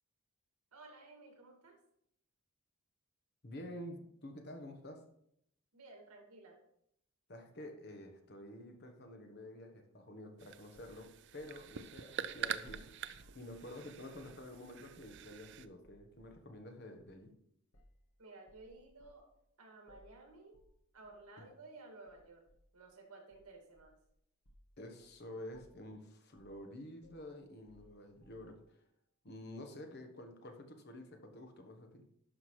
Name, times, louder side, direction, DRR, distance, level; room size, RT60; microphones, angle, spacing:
voice 1, 0.7-1.8 5.7-6.6 18.2-19.3 19.6-20.6 20.9-22.5 22.7-24.0, right 3 dB, 85° right, 2 dB, 2.0 m, -55 dB
voice 2, 3.4-5.0 7.3-13.1 13.3-17.3 24.8-28.8 29.2-32.0, left 1 dB, 50° left, 5 dB, 1.1 m, -50 dB
sound 1, 10.4-15.7, right 8 dB, 55° right, 0.4 m, -45 dB
sound 2, 10.7-13.5 14.1-14.4 15.0-15.5 15.8-16.4 17.0-17.2 17.7-18.1 18.5-19.3 19.9-20.2 20.5-20.8 21.0-21.3 22.1-22.7 23.3-24.1 24.4-24.7 25.0-25.2 25.5-25.9 26.3-26.6 27.0-28.7, left 1 dB, 65° left, 1.3 m, -65 dB
11.5 x 5.9 x 3.2 m, 0.73 s
head